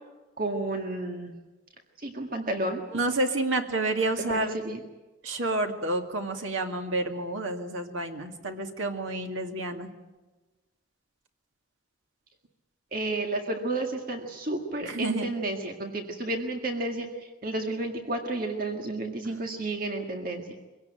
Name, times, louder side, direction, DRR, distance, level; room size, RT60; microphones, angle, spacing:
voice 1, 0.4-1.3 2.0-2.8 4.3-4.8 12.9-20.7, right 2 dB, 45° right, 3 dB, 1.8 m, -31 dB
voice 2, 2.9-4.5 5.2-9.9 14.8-15.3, right 2 dB, 80° right, 4 dB, 2.3 m, -29 dB
23.5 x 17.5 x 9.2 m, 1.2 s
head